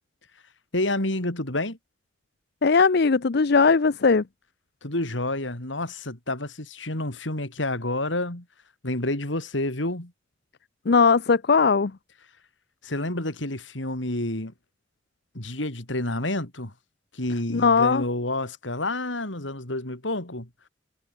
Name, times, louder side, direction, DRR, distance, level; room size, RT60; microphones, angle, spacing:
voice 1, 0.7-1.8 4.8-8.5 8.8-10.1 12.8-14.5 15.3-16.7 17.1-20.5, left 1 dB, 80° left, 4.3 m, -29 dB
voice 2, 2.6-4.2 10.9-11.9 17.5-18.0, left 5 dB, 60° left, 0.6 m, -19 dB
head